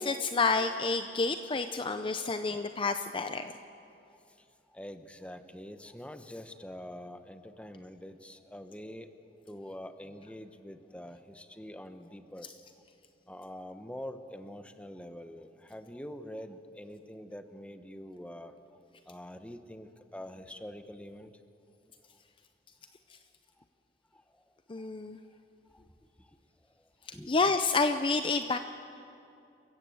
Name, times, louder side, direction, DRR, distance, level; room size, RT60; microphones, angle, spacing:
voice 1, 0.0-3.5 24.7-25.2 27.1-28.6, left 4 dB, 30° left, 8 dB, 0.6 m, -29 dB
voice 2, 4.7-9.1 9.5-12.5 13.3-18.5 19.1-21.3 24.1-24.2 24.8-24.9 25.7-25.9 27.1-27.3, left 1 dB, 5° left, 9 dB, 0.9 m, -45 dB
28.0 x 15.5 x 7.8 m, 2.6 s
head